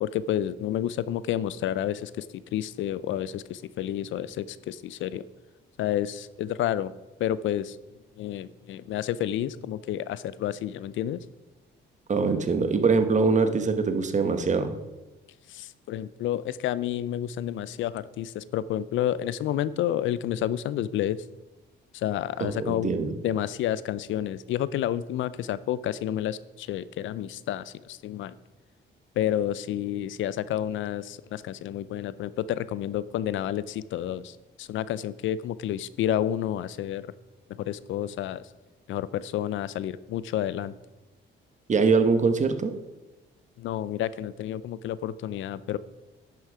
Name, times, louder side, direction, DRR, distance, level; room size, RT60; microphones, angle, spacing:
voice 1, 0.0-5.2 5.8-6.9 7.2-7.8 8.2-11.2 15.5-21.2 21.9-23.0 23.2-28.4 29.2-37.1 37.6-38.5 38.9-40.7 43.6-45.8, left 11 dB, 75° left, 17 dB, 0.5 m, -30 dB
voice 2, 12.1-14.7 22.4-23.1 41.7-42.7, right 4 dB, 35° right, 8 dB, 1.1 m, -23 dB
10.5 x 6.3 x 4.9 m, 1.1 s
cardioid pair, 90°, 20 cm